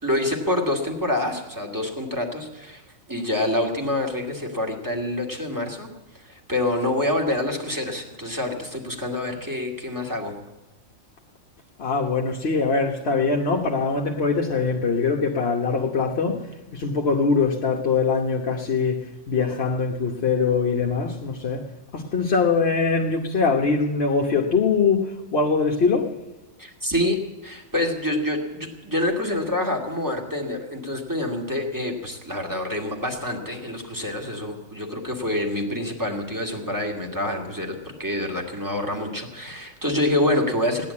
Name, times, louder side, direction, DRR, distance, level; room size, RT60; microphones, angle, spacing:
voice 1, 0.0-2.8 3.1-5.9 6.1-10.3 26.6-40.9, left 1 dB, 15° right, 1 dB, 2.3 m, -27 dB
voice 2, 11.8-21.6 21.9-26.1, left 4 dB, 50° left, 0 dB, 1.3 m, -22 dB
16.5 x 10.5 x 8.5 m, 1.1 s
omnidirectional pair, 1.4 m